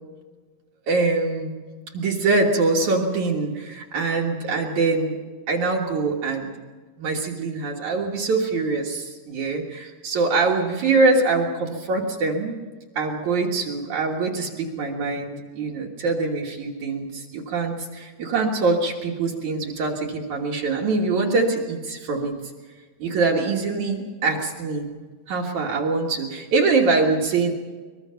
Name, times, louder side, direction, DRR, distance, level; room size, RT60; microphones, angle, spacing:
voice 1, 0.9-1.5 1.9-5.2 5.5-6.5 7.0-12.5 13.0-22.3 23.0-24.9 25.3-27.5, right 3 dB, 65° right, -1 dB, 2.9 m, -23 dB
23.0 x 21.5 x 5.8 m, 1.4 s
omnidirectional pair, 3.8 m